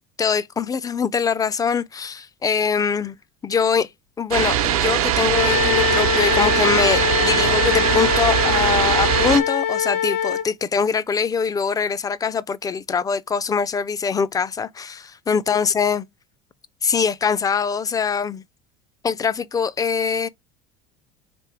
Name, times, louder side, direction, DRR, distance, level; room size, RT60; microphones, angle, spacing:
voice 1, 0.0-3.2 3.4-3.9 4.2-16.0 16.8-18.4 19.0-20.3, left 6 dB, 20° left, 0.4 m, -23 dB
sound 1, 4.3-9.4, right 11 dB, 85° right, 0.8 m, -21 dB
Wind instrument woodwind instrument, 5.3-10.5, left 9 dB, 70° left, 1.5 m, -23 dB
3.5 x 3.2 x 4.4 m
supercardioid pair, 95°, 18 cm